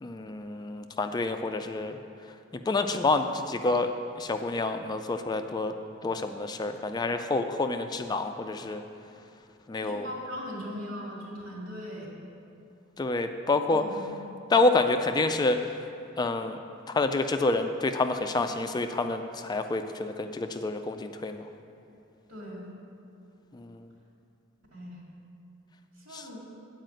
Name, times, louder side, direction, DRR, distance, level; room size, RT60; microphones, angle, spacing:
voice 1, 0.0-2.0 2.7-5.7 6.0-8.8 9.7-10.1 13.0-13.8 14.5-15.6 16.2-16.6 16.9-21.5 23.5-23.8 26.1-26.2, left 3 dB, 20° left, 7 dB, 0.3 m, -28 dB
voice 2, 9.8-12.1 13.7-14.2 22.3-22.7 24.7-25.0 26.0-26.4, equal, 75° right, -3 dB, 2.2 m, -39 dB
9.0 x 4.9 x 7.7 m, 2.6 s
head